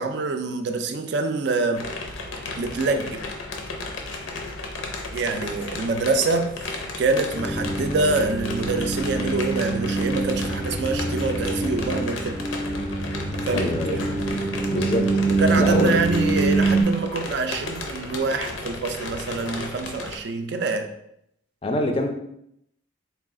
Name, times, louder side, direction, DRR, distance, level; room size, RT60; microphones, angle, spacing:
voice 1, 0.0-1.9 2.6-3.2 5.1-12.4 13.5-14.0 15.3-20.9, right 3 dB, 60° right, 7 dB, 0.4 m, -25 dB
sound 1, 1.8-20.2, left 3 dB, 90° left, 0.6 m, -34 dB
sound 2, 7.3-16.8, right 3 dB, 15° right, 0.6 m, -25 dB
voice 2, 13.5-14.0 14.7-15.2 15.6-15.9 21.6-22.1, left 1 dB, 30° left, 4 dB, 0.4 m, -24 dB
3.9 x 2.3 x 3.6 m, 0.75 s
head